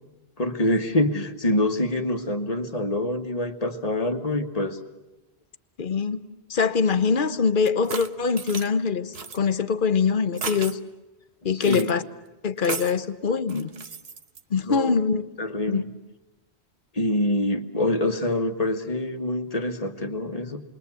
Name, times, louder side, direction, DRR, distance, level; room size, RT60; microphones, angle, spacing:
voice 1, 0.4-4.8 11.6-11.9 14.7-15.0 15.4-15.9 17.0-20.6, left 1 dB, 35° left, 7 dB, 1.7 m, -25 dB
voice 2, 5.8-6.2 6.5-10.8 11.4-12.0 12.4-13.7 14.5-15.2 15.7-15.8, left 5 dB, 50° left, 12 dB, 1.2 m, -23 dB
sound 1, 7.7-8.7 9.1-9.4 10.3-10.8 11.6-11.9 12.6-13.0 13.5-14.4, right 5 dB, 70° right, 1.4 m, -35 dB
28.5 x 22.0 x 8.3 m, 1.0 s
omnidirectional pair, 1.1 m